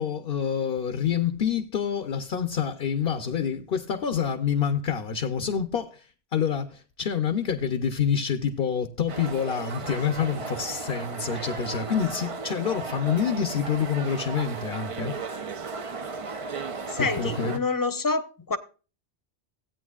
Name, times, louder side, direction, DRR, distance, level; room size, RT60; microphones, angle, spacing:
voice 1, 0.0-15.2 17.0-17.6, left 7 dB, 60° left, 1.0 m, -27 dB
sound 1, 9.1-17.6, right 4 dB, 40° right, 0.6 m, -35 dB
voice 2, 16.9-18.6, left 4 dB, 20° left, 0.8 m, -27 dB
16.5 x 8.9 x 2.4 m
omnidirectional pair, 1.1 m